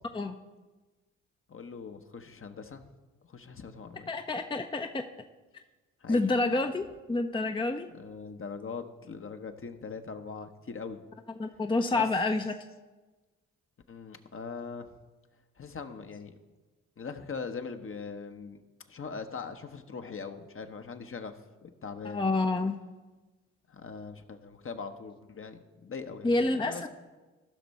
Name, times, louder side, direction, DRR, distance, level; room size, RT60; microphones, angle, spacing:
voice 1, 1.5-2.8 3.3-4.1 6.0-6.3 7.9-11.0 11.9-12.0 13.9-14.9 15.6-16.3 17.0-18.6 18.9-21.3 21.6-22.3 23.7-26.9, left 5 dB, 35° left, 7 dB, 1.0 m, -41 dB
voice 2, 4.1-5.0 6.1-7.9 11.4-12.6 22.0-22.8 26.2-26.9, left 2 dB, 15° left, 6 dB, 0.6 m, -28 dB
15.0 x 6.0 x 4.2 m, 1.2 s
hypercardioid pair, 45°, 35 cm